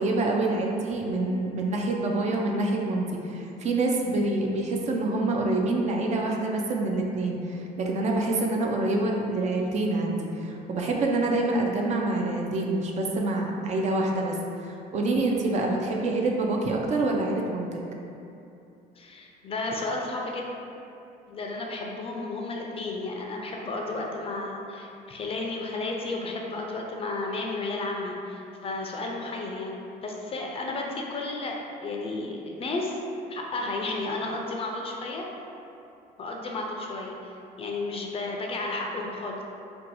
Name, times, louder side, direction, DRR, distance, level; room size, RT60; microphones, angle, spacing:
voice 1, 0.0-17.8, right 2 dB, 45° right, 0 dB, 0.4 m, -26 dB
voice 2, 19.0-20.5 21.3-33.0 33.3-35.3 36.2-39.4, left 2 dB, 35° left, 0 dB, 0.4 m, -33 dB
2.7 x 2.2 x 4.0 m, 2.7 s
cardioid pair, 110°, 17 cm